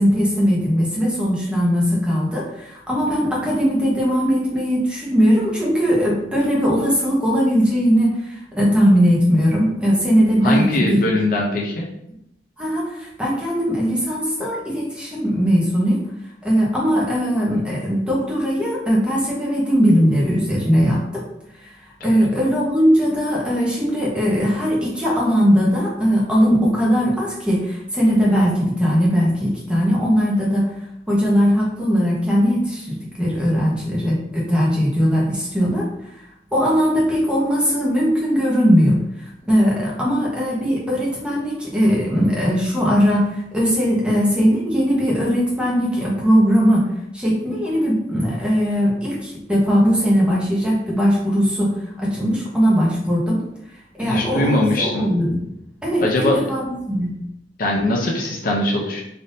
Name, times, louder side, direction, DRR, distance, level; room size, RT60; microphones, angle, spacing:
voice 1, 0.0-11.0 12.6-16.0 16.4-21.2 21.6-21.7 22.0-30.7 31.1-35.9 36.5-39.0 39.5-46.9 47.1-53.4 54.0-55.5 55.8-57.2, equal, 5° right, -5 dB, 0.8 m, -19 dB
voice 2, 10.4-11.9 22.0-22.1 54.0-55.1 56.0-56.5 57.6-59.0, left 1 dB, 50° left, -1 dB, 0.5 m, -21 dB
3.4 x 2.6 x 2.6 m, 0.81 s
head